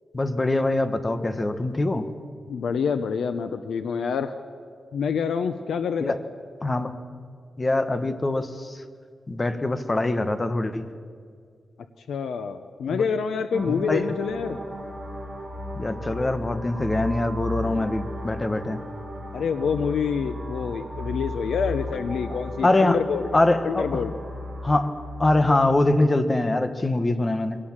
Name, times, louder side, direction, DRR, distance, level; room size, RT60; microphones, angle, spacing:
voice 1, 0.1-2.1 6.0-6.2 6.6-6.9 7.6-8.8 9.3-10.8 12.9-13.0 13.7-14.1 15.7-18.8 22.6-23.0 23.3-24.0 24.6-27.6, left 2 dB, 20° left, 10 dB, 1.2 m, -23 dB
voice 2, 2.5-4.3 4.9-6.1 12.1-14.6 19.3-23.3 23.6-24.1, left 6 dB, 90° left, 9 dB, 0.8 m, -27 dB
sound 1, 13.5-25.5, left 1 dB, 15° right, 6.2 m, -35 dB
23.0 x 18.0 x 7.4 m, 2.1 s
wide cardioid pair, 140°, 0 cm